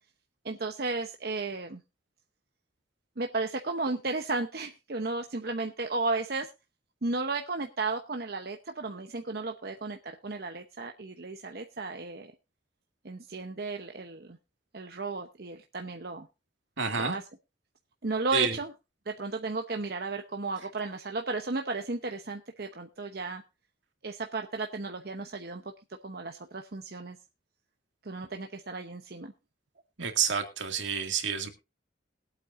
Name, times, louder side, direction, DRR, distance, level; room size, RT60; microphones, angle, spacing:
voice 1, 0.4-1.8 3.2-6.5 7.0-12.3 13.0-14.4 14.7-16.3 16.9-17.2 18.0-18.7 19.1-23.4 24.0-25.7 26.0-27.2 28.0-29.3, right 3 dB, 55° right, 4 dB, 0.9 m, -34 dB
voice 2, 16.8-17.2 18.3-18.6 30.0-31.5, right 6 dB, 85° right, 5 dB, 2.2 m, -29 dB
21.5 x 8.4 x 2.6 m, 0.27 s
head